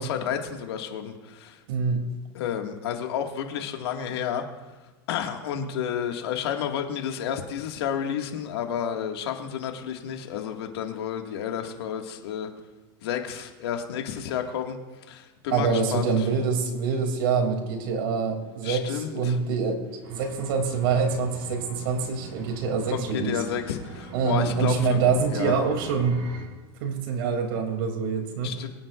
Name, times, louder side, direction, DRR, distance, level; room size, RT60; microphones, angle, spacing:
voice 1, 0.0-1.6 2.3-4.4 5.1-12.5 13.0-14.8 15.1-16.2 18.6-19.4 22.9-25.0 25.3-25.5 28.4-28.7, left 8 dB, 80° left, 3 dB, 1.9 m, -31 dB
voice 2, 1.7-2.1 15.5-23.4 24.1-26.2 26.8-28.5, right 5 dB, 65° right, 3 dB, 2.8 m, -25 dB
sound 1, 20.0-26.5, right 3 dB, 50° right, 3.8 m, -43 dB
23.5 x 9.6 x 2.5 m, 1.3 s
supercardioid pair, 140°, 13 cm